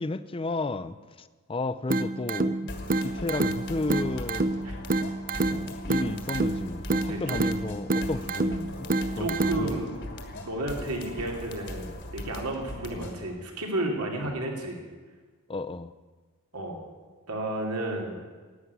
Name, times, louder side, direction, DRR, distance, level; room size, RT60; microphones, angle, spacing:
voice 1, 0.0-2.7 3.0-4.6 5.5-9.9 12.9-13.1 14.2-14.4 15.5-15.9, left 2 dB, 25° left, 14 dB, 0.5 m, -33 dB
sound 1, 1.9-9.9, right 2 dB, 40° right, 0.6 m, -29 dB
sound 2, 2.7-13.3, left 1 dB, 50° left, 1.5 m, -40 dB
voice 2, 7.1-7.4 9.2-9.9 10.4-14.8 16.5-16.8 17.3-18.2, right 1 dB, 90° right, 1 dB, 2.7 m, -32 dB
11.5 x 9.0 x 9.5 m, 1.4 s
head